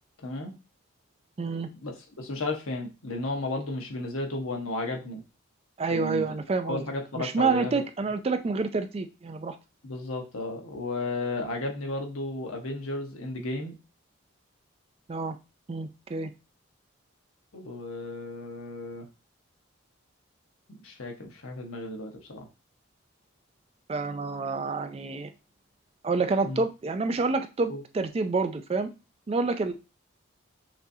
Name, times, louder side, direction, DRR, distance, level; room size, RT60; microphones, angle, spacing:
voice 1, 0.2-0.5 1.7-5.2 5.9-6.4 6.6-7.8 9.8-13.7 17.5-19.1 20.7-22.5 26.4-26.6 27.7-27.8, left 2 dB, 80° left, 2 dB, 1.1 m, -34 dB
voice 2, 1.4-1.7 5.8-6.8 7.2-9.6 15.1-15.4 15.7-16.3 23.9-25.3 26.0-28.9 29.3-29.7, right 3 dB, 30° right, 9 dB, 0.3 m, -28 dB
6.0 x 2.7 x 2.7 m, 0.29 s
head